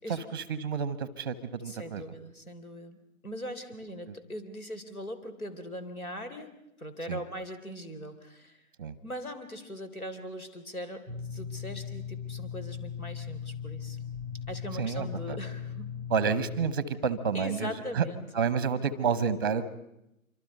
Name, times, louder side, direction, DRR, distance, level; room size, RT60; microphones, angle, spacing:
voice 1, 0.1-2.0 7.1-7.2 8.8-8.9 14.8-15.4 16.1-18.0 18.3-19.7, right 6 dB, 15° right, 16 dB, 0.8 m, -30 dB
voice 2, 1.7-3.0 3.2-6.5 6.8-8.7 9.0-14.0 14.5-15.9 17.3-18.3, equal, 85° left, 8 dB, 3.7 m, -40 dB
sound 1, 11.1-16.7, left 7 dB, 10° left, 0.9 m, -38 dB
26.5 x 25.0 x 5.4 m, 0.85 s
figure-of-eight pair, 150°, 42 cm